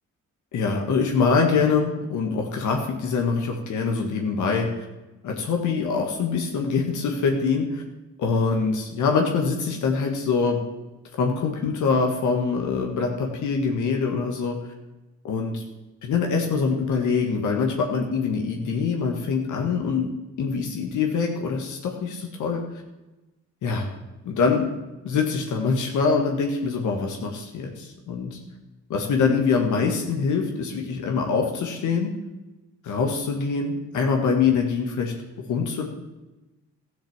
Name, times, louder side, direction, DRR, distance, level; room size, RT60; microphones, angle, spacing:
voice 1, 0.5-4.7 5.2-7.8 8.2-10.6 11.1-14.6 15.2-15.6 16.0-20.1 20.4-22.6 23.6-23.9 24.2-24.7 25.0-28.4 28.9-32.1 32.8-35.1 35.5-35.9, left 5 dB, 75° left, 2 dB, 1.8 m, -24 dB
13.5 x 7.3 x 7.3 m, 1.1 s
cardioid pair, 90°, 30 cm